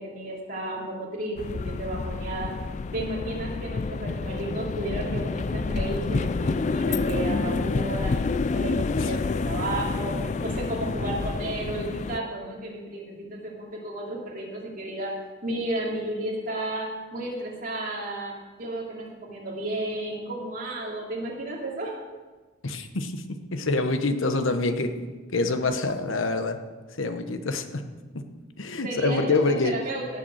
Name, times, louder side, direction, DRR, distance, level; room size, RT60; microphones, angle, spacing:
voice 1, 0.0-2.5 2.9-15.1 15.4-22.0 28.8-30.2, right 1 dB, 45° right, -3 dB, 2.8 m, -33 dB
sound 1, 1.4-12.2, left 4 dB, 35° left, 0.3 m, -28 dB
voice 2, 22.6-24.9 25.3-26.6 26.9-27.9 28.1-28.3 28.6-29.8, left 3 dB, 85° left, 7 dB, 1.1 m, -26 dB
17.5 x 6.9 x 6.4 m, 1.3 s
head